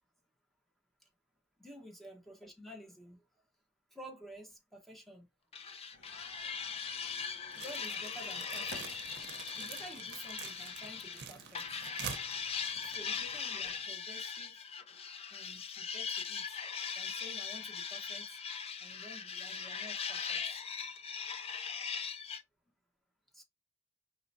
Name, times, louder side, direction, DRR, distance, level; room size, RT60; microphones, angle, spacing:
voice 1, 1.6-3.2 3.9-5.3 7.5-9.0 9.6-11.8 12.8-14.6 15.3-16.4 17.0-18.4 18.8-20.4 23.3-23.4, equal, ahead, 1.0 m, -51 dB
sound 1, 5.5-11.2 11.6-22.4, left 6 dB, 30° left, 0.4 m, -40 dB
sound 2, 5.9-14.0, left 3 dB, 65° left, 1.0 m, -57 dB
sound 3, 7.5-13.6, right 7 dB, 60° right, 0.8 m, -47 dB
4.8 x 3.1 x 2.7 m
head